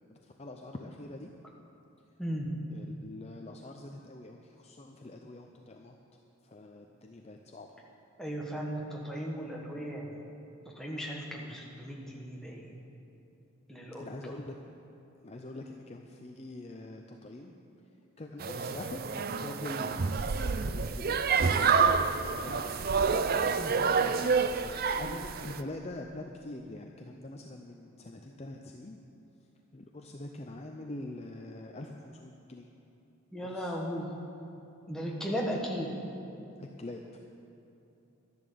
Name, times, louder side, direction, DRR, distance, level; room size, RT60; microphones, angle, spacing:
voice 1, 0.1-1.3 2.7-5.9 6.4-7.8 13.9-14.6 15.2-17.5 18.2-22.9 23.9-29.0 29.7-32.7 33.4-33.8 36.6-37.0, left 2 dB, 30° left, 2 dB, 0.5 m, -44 dB
voice 2, 8.2-10.2 10.7-12.8 13.7-14.3 23.5-23.7 33.3-34.1 34.9-35.9, equal, 5° left, -3 dB, 1.5 m, -36 dB
sound 1, 18.4-25.6, right 5 dB, 40° right, 0.4 m, -28 dB
12.5 x 10.5 x 6.9 m, 2.8 s
head